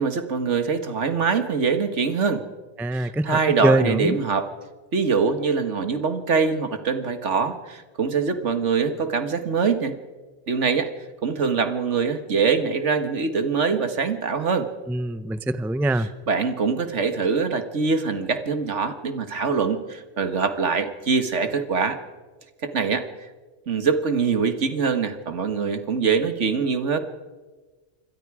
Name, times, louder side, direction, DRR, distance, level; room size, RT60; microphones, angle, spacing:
voice 1, 0.0-2.4 2.9-4.5 4.9-10.0 10.5-10.9 11.2-14.7 15.8-22.0 22.6-23.1 23.7-27.0, right 5 dB, 70° right, 8 dB, 1.9 m, -23 dB
voice 2, 2.8-3.3 3.6-4.2 14.9-16.1, right 1 dB, ahead, 13 dB, 0.5 m, -23 dB
27.0 x 23.5 x 4.9 m, 1.3 s
omnidirectional pair, 1.3 m